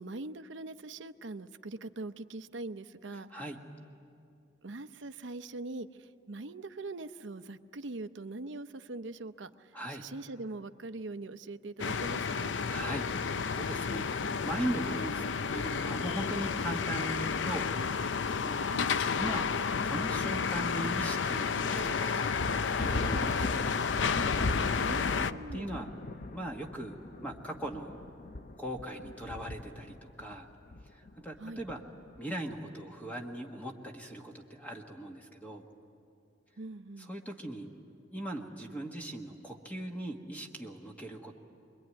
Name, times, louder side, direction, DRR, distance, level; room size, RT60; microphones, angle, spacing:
voice 1, 0.0-3.4 4.6-5.9 6.3-9.7 10.0-12.5 18.7-19.0 24.8-25.7 31.4-31.6 36.6-37.1, right 2 dB, 75° right, 10 dB, 0.8 m, -42 dB
voice 2, 3.1-3.6 9.7-10.0 12.7-18.6 19.1-19.5 19.8-22.3 22.7-23.6 24.9-25.1 25.5-25.9 26.3-27.0 27.2-28.0 28.6-30.5 30.9-31.8 32.2-35.6 37.0-37.7 38.1-41.4, right 1 dB, 10° left, 1 dB, 1.5 m, -39 dB
sound 1, 11.8-25.3, left 5 dB, 75° left, 0.5 m, -31 dB
sound 2, 22.4-32.3, left 2 dB, 50° left, 0.8 m, -38 dB
26.5 x 22.0 x 9.5 m, 2.5 s
head